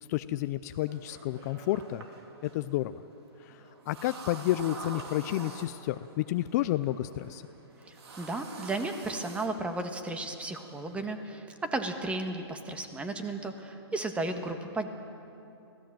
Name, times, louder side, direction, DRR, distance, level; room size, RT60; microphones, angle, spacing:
voice 1, 0.1-2.0 2.5-3.0 3.4-7.5, left 14 dB, 40° left, 12 dB, 0.5 m, -31 dB
sound 1, 0.8-11.0, right 3 dB, 75° right, 3.2 m, -47 dB
voice 2, 7.9-14.9, right 2 dB, 10° right, 6 dB, 1.5 m, -34 dB
25.5 x 17.0 x 7.6 m, 2.7 s
hypercardioid pair, 140°, 14 cm